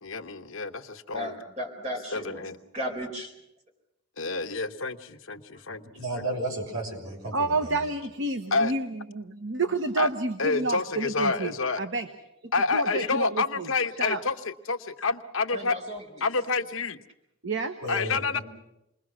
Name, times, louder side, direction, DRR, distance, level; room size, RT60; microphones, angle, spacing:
voice 1, 0.0-1.4 2.1-2.6 4.2-5.8 6.1-6.2 8.5-8.7 10.0-10.1 10.4-11.8 12.5-15.8 16.2-17.0 17.9-18.4, left 4 dB, 65° left, 1.0 m, -28 dB
voice 2, 1.1-2.4 2.7-3.3 15.5-16.0, equal, 30° right, 4.6 m, -35 dB
voice 3, 5.9-7.7 17.8-18.4, right 1 dB, 80° right, 6.5 m, -33 dB
voice 4, 7.3-12.1 12.4-13.7 14.0-14.2 17.4-17.7, right 3 dB, 55° right, 1.1 m, -29 dB
28.0 x 21.0 x 6.1 m
head